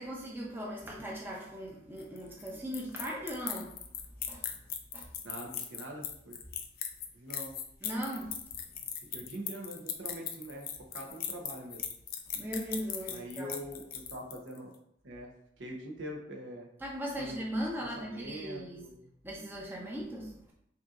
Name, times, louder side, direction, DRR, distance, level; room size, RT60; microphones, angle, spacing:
voice 1, 0.0-3.7 4.2-4.4 4.9-5.1 7.8-8.3 12.3-13.5 16.8-18.9 19.2-20.5, equal, 10° right, -3 dB, 0.7 m, -38 dB
sound 1, 2.0-14.6, left 9 dB, 50° left, 0.4 m, -39 dB
voice 2, 5.2-6.4 7.1-7.5 9.1-10.7 10.9-11.8 13.0-14.7 15.0-15.3 15.6-16.7 17.2-17.4 17.8-19.1, right 1 dB, 75° right, 0 dB, 0.9 m, -43 dB
5.5 x 2.8 x 2.5 m, 0.72 s
head